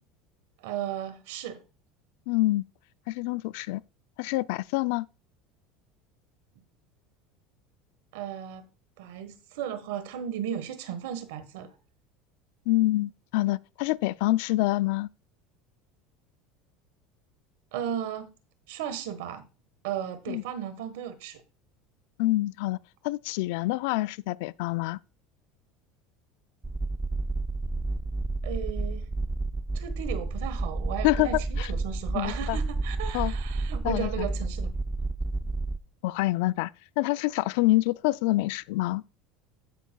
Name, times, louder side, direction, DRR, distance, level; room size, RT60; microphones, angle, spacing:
voice 1, 0.6-1.6 8.1-8.7 9.0-11.7 17.7-18.3 18.7-19.5 19.8-21.4 28.4-29.1 29.7-34.7, right 9 dB, 80° right, 1.2 m, -35 dB
voice 2, 2.3-2.6 3.1-3.8 4.2-5.1 12.7-15.1 20.3-20.4 22.2-22.8 23.0-25.0 31.0-31.3 31.6-31.7 32.1-32.6 33.1-33.3 33.8-34.3 36.0-36.7 37.0-39.0, left 18 dB, 75° left, 0.3 m, -26 dB
sound 1, 26.6-35.8, right 2 dB, 10° right, 0.4 m, -31 dB
15.0 x 5.7 x 2.2 m
supercardioid pair, 100°, 0 cm